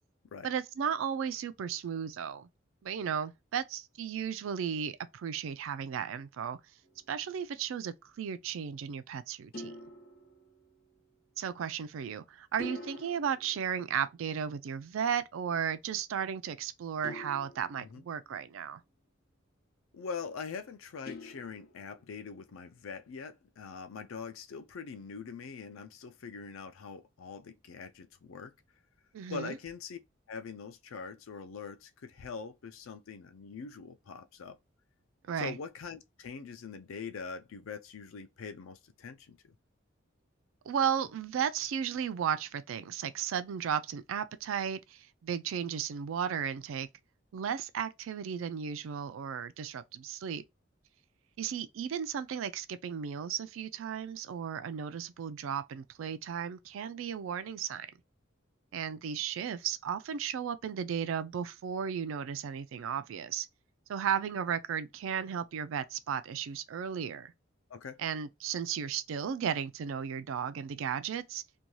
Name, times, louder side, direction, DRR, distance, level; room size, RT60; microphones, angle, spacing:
voice 1, 0.4-2.5 2.8-6.6 7.1-9.7 11.4-18.8 29.1-29.6 35.3-35.6 40.7-46.9 47.3-50.4 51.4-57.9 58.7-63.5 63.9-67.3 68.0-71.4, right 8 dB, 80° right, 0.3 m, -35 dB
sound 1, 6.8-7.3 9.5-11.0 12.6-14.5 17.0-18.7 21.1-22.2, left 1 dB, 50° left, 1.1 m, -47 dB
voice 2, 19.9-28.5 29.3-30.0 30.3-34.6 35.4-39.5 67.7-68.0, left 5 dB, 85° left, 0.4 m, -43 dB
2.6 x 2.2 x 3.0 m
head